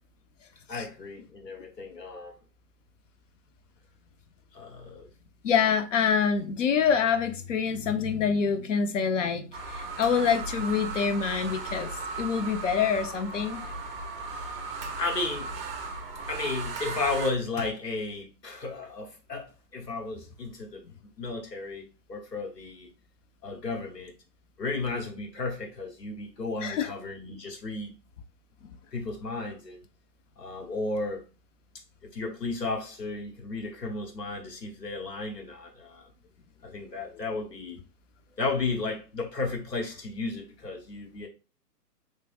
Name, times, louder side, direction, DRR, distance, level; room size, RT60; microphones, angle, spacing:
voice 1, 0.7-2.3 4.5-5.1 14.3-14.6 15.0-15.5 16.3-20.8 21.2-22.9 23.4-24.1 24.6-27.9 28.9-29.9 30.4-31.2 32.1-36.1 36.6-37.8 38.4-41.3, left 3 dB, 90° left, 1.2 m, -34 dB
voice 2, 5.4-11.9 12.2-13.6 26.6-26.9, left 6 dB, 50° left, 0.7 m, -26 dB
sound 1, 9.5-17.3, right 3 dB, 40° right, 0.6 m, -36 dB
3.5 x 3.3 x 2.4 m
figure-of-eight pair, 130°, 48 cm